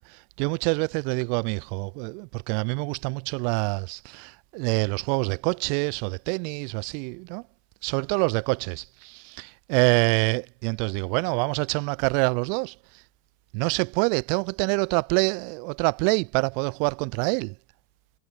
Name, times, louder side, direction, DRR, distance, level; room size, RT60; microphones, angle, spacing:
voice 1, 0.4-7.4 7.8-12.7 13.5-17.5, right 40 dB or more, 45° right, 0.5 m, -26 dB
figure-of-eight pair, 90°, 0 cm